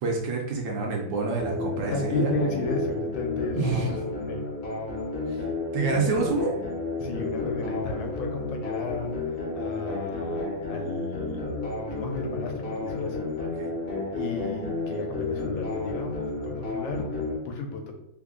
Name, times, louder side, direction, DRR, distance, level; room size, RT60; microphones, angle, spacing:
voice 1, 0.0-2.3 3.5-4.0 5.3-5.4 5.7-6.5 13.4-13.7, right 4 dB, 70° right, 0 dB, 1.2 m, -28 dB
sound 1, 1.4-17.4, left 2 dB, 50° left, 0.8 m, -32 dB
voice 2, 1.9-3.9 4.3-4.4 7.0-11.4 11.9-13.3 14.2-17.9, left 3 dB, 75° left, 3 dB, 1.3 m, -33 dB
3.4 x 2.3 x 3.6 m, 0.79 s
omnidirectional pair, 2.2 m